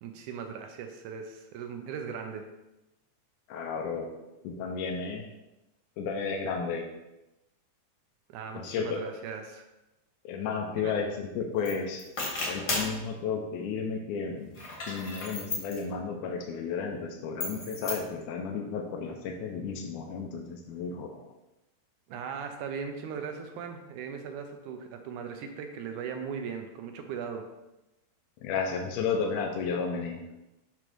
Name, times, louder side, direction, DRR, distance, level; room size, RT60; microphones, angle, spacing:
voice 1, 0.0-2.5 8.3-9.7 10.8-10.9 22.1-27.5, right 6 dB, 75° right, 5 dB, 2.0 m, -38 dB
voice 2, 3.5-4.1 4.4-5.2 6.0-6.9 8.6-9.0 10.2-12.0 12.4-14.5 14.9-21.3 28.4-30.2, left 5 dB, 75° left, 1 dB, 2.1 m, -33 dB
sound 1, 11.6-11.7 12.0-13.0 14.5-15.8 17.4-18.0, left 2 dB, 45° left, 1.5 m, -34 dB
7.0 x 3.3 x 6.0 m, 0.95 s
omnidirectional pair, 3.8 m